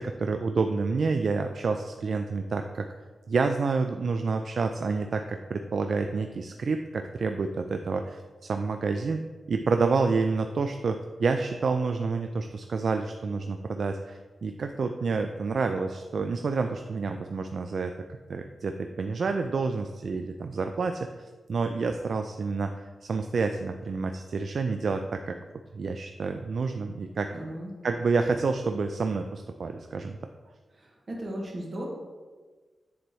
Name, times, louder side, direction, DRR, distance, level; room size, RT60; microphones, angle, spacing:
voice 1, 0.0-2.9 3.3-17.9 18.3-21.1 21.5-25.4 25.7-27.3 27.8-30.2, right 4 dB, 60° right, 6 dB, 0.3 m, -28 dB
voice 2, 27.3-27.7 30.8-31.8, right 1 dB, 40° right, -2 dB, 1.7 m, -36 dB
9.2 x 4.3 x 3.1 m, 1.3 s
wide cardioid pair, 125°, 0 cm